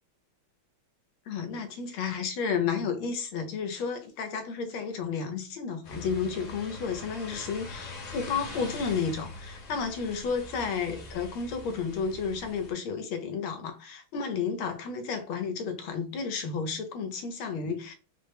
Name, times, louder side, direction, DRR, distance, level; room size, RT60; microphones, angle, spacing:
voice 1, 1.3-17.9, left 5 dB, 80° left, 1.4 m, -32 dB
sound 1, 5.8-12.7, left 2 dB, 55° left, 0.9 m, -43 dB
4.1 x 2.1 x 3.3 m
omnidirectional pair, 2.3 m